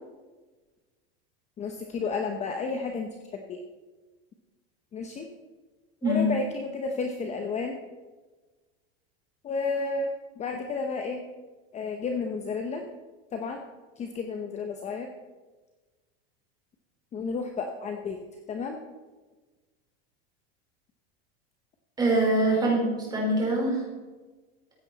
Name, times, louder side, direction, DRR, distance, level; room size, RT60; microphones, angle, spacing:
voice 1, 1.6-3.1 3.5-3.6 4.9-5.3 6.0-7.8 9.4-10.1 10.4-11.2 11.7-12.8 13.3-13.6 14.0-15.1 17.1-18.2 18.5-18.8, left 4 dB, 20° left, 4 dB, 0.9 m, -31 dB
voice 2, 22.0-23.8, right 1 dB, 15° right, -3 dB, 4.6 m, -24 dB
15.0 x 9.0 x 4.1 m, 1.3 s
supercardioid pair, 145°, 31 cm